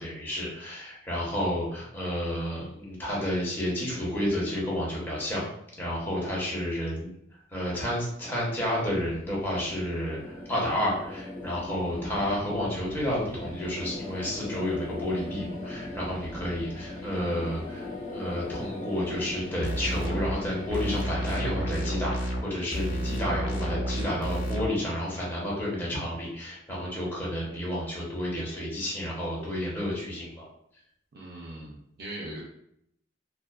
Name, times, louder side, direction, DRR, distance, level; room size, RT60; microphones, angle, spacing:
voice 1, 0.0-5.4 5.8-7.1 7.5-17.9 18.1-30.4, left 1 dB, 10° left, -6 dB, 0.8 m, -31 dB
sound 1, 8.1-23.1, left 1 dB, 40° left, 1.0 m, -40 dB
sound 2, 19.6-20.4 20.7-22.4 22.7-24.7, equal, 75° left, 0.6 m, -30 dB
voice 2, 31.1-32.4, right 1 dB, 55° right, -4 dB, 0.4 m, -40 dB
2.4 x 2.3 x 2.3 m, 0.73 s
head